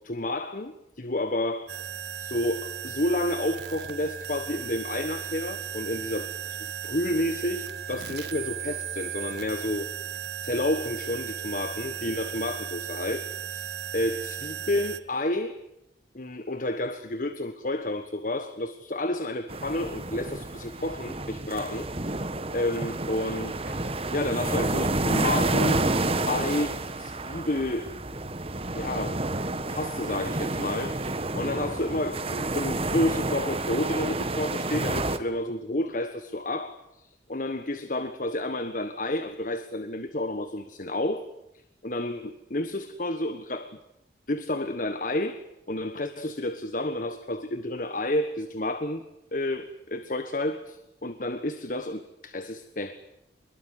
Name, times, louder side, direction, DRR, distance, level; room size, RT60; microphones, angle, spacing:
voice 1, 0.0-1.7 2.2-9.9 10.4-15.5 16.1-22.1 22.5-25.8 26.3-27.9 28.8-29.2 29.7-41.3 41.8-43.8 44.3-45.4 45.7-49.0 49.3-52.9, left 1 dB, 45° left, 10 dB, 1.4 m, -30 dB
sound 1, 1.7-15.0, right 9 dB, 70° right, 1.4 m, -36 dB
sound 2, 19.5-35.2, right 2 dB, 35° right, 1.5 m, -29 dB
24.5 x 22.5 x 9.6 m, 0.83 s
head